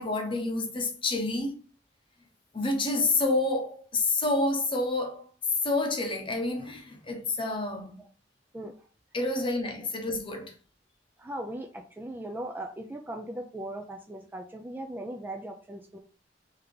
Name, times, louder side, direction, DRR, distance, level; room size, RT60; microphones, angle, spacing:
voice 1, 0.0-1.6 2.5-5.2 5.6-7.9 9.1-10.5, left 2 dB, 30° left, 0.8 m, -28 dB
voice 2, 11.2-16.0, right 1 dB, 10° right, 0.3 m, -38 dB
3.6 x 2.8 x 3.7 m
head